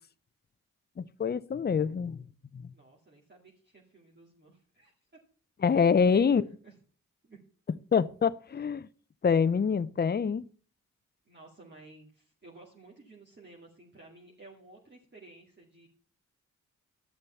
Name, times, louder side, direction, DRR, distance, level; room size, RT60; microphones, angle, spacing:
voice 1, 1.2-2.2 2.5-2.6 5.6-6.4 7.9-8.9 9.2-10.4, left 6 dB, 30° left, 0.6 m, -25 dB
voice 2, 2.7-4.9 5.9-6.3 6.6-6.8 7.2-7.4 11.3-15.9, right 2 dB, 30° right, 2.3 m, -54 dB
11.0 x 6.7 x 5.7 m
cardioid pair, 55°, 33 cm